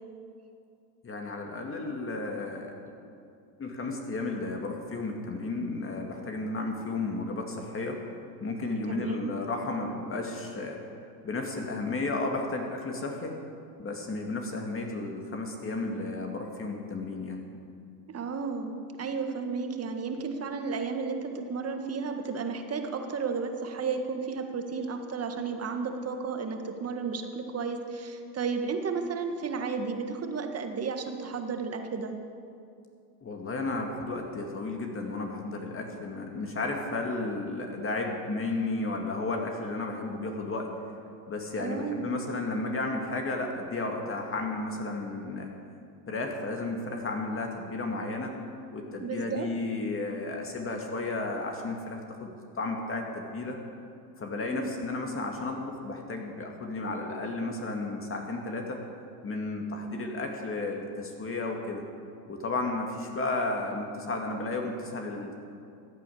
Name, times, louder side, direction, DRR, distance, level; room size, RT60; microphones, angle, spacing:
voice 1, 1.0-2.7 3.6-8.0 8.4-10.8 11.2-13.3 13.8-17.4 33.2-40.7 41.3-45.5 46.1-48.3 48.7-53.6 54.2-58.8 59.2-61.8 62.3-65.4, left 2 dB, 25° left, 2 dB, 2.2 m, -33 dB
voice 2, 8.9-9.3 18.1-32.1 41.6-42.2 49.0-49.5 54.4-54.7, right 5 dB, 30° right, 5 dB, 1.8 m, -33 dB
14.5 x 9.2 x 8.6 m, 2.5 s
supercardioid pair, 100°, 47 cm